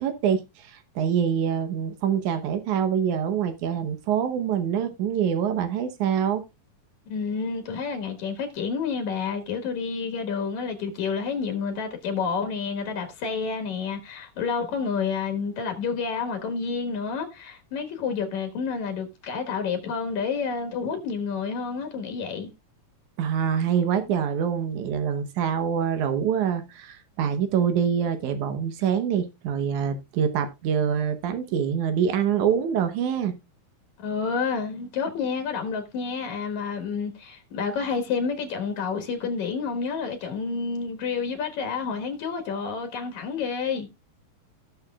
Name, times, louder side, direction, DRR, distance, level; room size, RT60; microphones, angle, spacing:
voice 1, 0.0-6.4 23.2-33.3, right 8 dB, 85° right, 2.5 m, -25 dB
voice 2, 7.1-22.5 34.0-43.9, left 5 dB, 75° left, 2.9 m, -29 dB
17.0 x 6.8 x 2.3 m
omnidirectional pair, 3.4 m